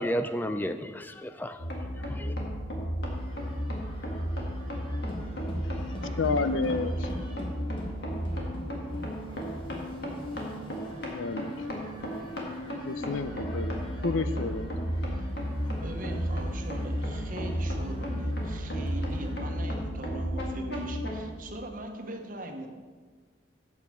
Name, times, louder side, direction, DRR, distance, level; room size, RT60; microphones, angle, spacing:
voice 1, 0.0-2.4, equal, 10° left, 0.3 m, -33 dB
sound 1, 1.6-21.2, equal, 55° left, 1.8 m, -33 dB
sound 2, 3.1-19.3, equal, 25° left, 1.6 m, -47 dB
voice 2, 6.2-7.1 11.1-11.5 12.8-14.7, left 3 dB, 90° left, 0.6 m, -30 dB
voice 3, 15.7-22.7, right 1 dB, 45° right, 1.0 m, -40 dB
8.3 x 6.9 x 5.6 m
head